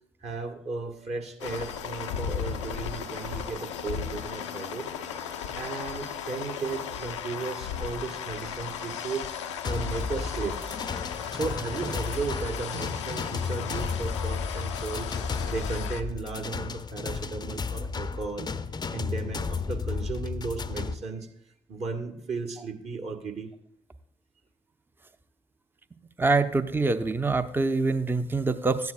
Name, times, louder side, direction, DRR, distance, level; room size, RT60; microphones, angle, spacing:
voice 1, 0.2-4.9 5.5-9.3 9.6-10.6 11.3-15.1 15.5-18.5 18.9-21.3 21.7-23.5, right 4 dB, 45° right, 3 dB, 1.6 m, -35 dB
sound 1, 1.4-16.0, left 7 dB, 80° left, 0.5 m, -36 dB
sound 2, 9.6-20.9, left 5 dB, 30° left, 0.6 m, -33 dB
voice 2, 26.2-28.9, right 3 dB, 15° right, 11 dB, 0.6 m, -25 dB
13.5 x 9.4 x 2.5 m, 0.74 s
figure-of-eight pair, 40°, 15 cm